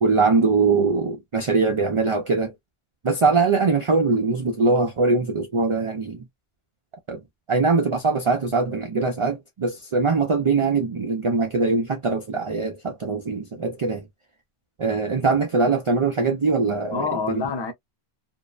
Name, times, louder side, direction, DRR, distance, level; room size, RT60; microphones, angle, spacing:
voice 1, 0.0-2.5 3.0-6.2 7.1-7.2 7.5-14.0 14.8-17.4, right 4 dB, 55° right, 0.3 m, -22 dB
voice 2, 14.9-15.3 16.9-17.7, left 4 dB, 35° left, 0.5 m, -28 dB
2.6 x 2.0 x 2.3 m
omnidirectional pair, 1.1 m